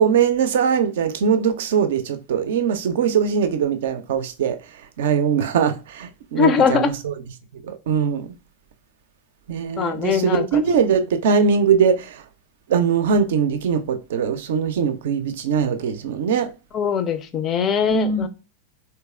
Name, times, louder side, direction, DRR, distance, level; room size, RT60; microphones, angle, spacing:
voice 1, 0.0-4.6 5.0-7.1 7.5-8.3 9.5-12.2 12.7-16.5 17.9-18.3, right 6 dB, 55° right, 0.4 m, -21 dB
voice 2, 6.4-6.9 9.8-10.6 16.7-18.3, left 7 dB, 30° left, 0.4 m, -21 dB
3.4 x 2.8 x 2.2 m
figure-of-eight pair, 90°, 0 cm